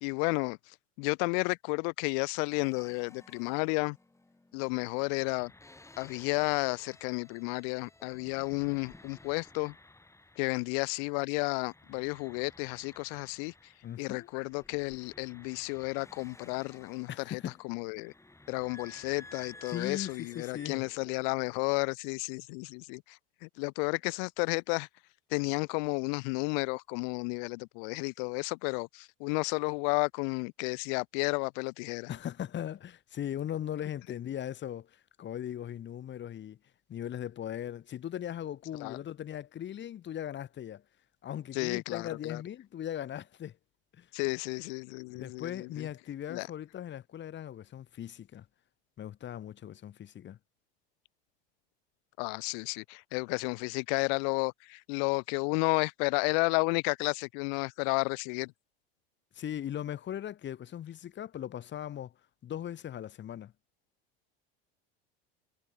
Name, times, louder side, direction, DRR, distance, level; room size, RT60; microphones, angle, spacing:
voice 1, 0.0-4.0 4.5-5.5 6.0-9.7 10.4-13.7 14.0-18.1 18.5-24.9 25.3-32.1 38.8-39.0 41.5-42.4 44.1-45.9 46.3-46.5 52.2-58.5, left 40 dB or more, 65° left, 1.2 m, -32 dB
sound 1, 2.5-11.2 11.4-21.2, left 2 dB, 10° left, 4.7 m, -55 dB
voice 2, 13.8-14.3 17.1-17.6 19.7-20.8 32.1-36.6 36.9-40.8 41.2-43.6 43.9-44.1 45.1-48.5 49.0-50.4 59.3-62.1 62.4-63.5, left 10 dB, 40° left, 2.9 m, -39 dB
hypercardioid pair, 90°, 30 cm